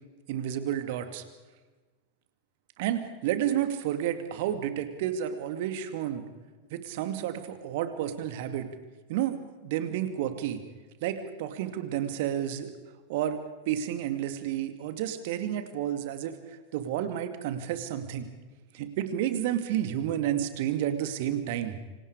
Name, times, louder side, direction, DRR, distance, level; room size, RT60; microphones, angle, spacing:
voice 1, 0.3-1.2 2.8-6.2 6.7-8.7 9.1-9.4 9.6-10.6 11.0-12.7 13.1-13.4 13.7-16.4 16.7-18.3 18.7-21.8, right 11 dB, 50° right, 9 dB, 2.5 m, -30 dB
28.0 x 26.0 x 5.0 m, 1.3 s
figure-of-eight pair, 90°, 0 cm